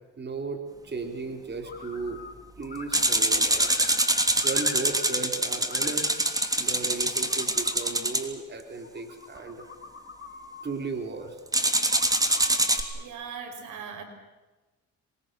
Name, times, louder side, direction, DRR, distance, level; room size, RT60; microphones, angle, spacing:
voice 1, 0.2-2.2 2.6-3.7 4.4-6.1 6.6-9.7 10.6-11.4, right 4 dB, 35° right, 4 dB, 4.3 m, -35 dB
sound 1, 1.6-2.3 2.6-5.2 5.5-6.4 6.9-7.9 8.8-10.7 11.8-12.9, left 4 dB, 35° left, 8.0 m, -44 dB
sound 2, 2.9-8.2 11.5-12.8, right 1 dB, 10° right, 3.2 m, -25 dB
voice 2, 12.9-14.0, right 6 dB, 80° right, 6 dB, 5.2 m, -39 dB
27.5 x 23.0 x 7.0 m, 1.1 s
cardioid pair, 90°, 30 cm